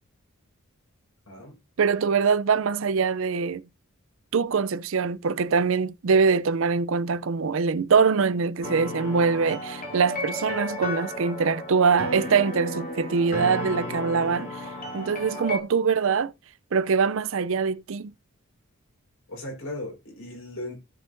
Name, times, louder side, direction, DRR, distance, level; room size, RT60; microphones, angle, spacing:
voice 1, 1.3-1.6 13.1-13.5 19.3-20.8, left 1 dB, 80° left, 4.8 m, -37 dB
voice 2, 1.8-3.6 4.3-14.6 14.9-16.3 16.7-18.1, right 5 dB, 65° right, 0.5 m, -23 dB
sound 1, 8.6-15.6, left 1 dB, 40° left, 2.2 m, -34 dB
17.0 x 5.6 x 2.6 m
head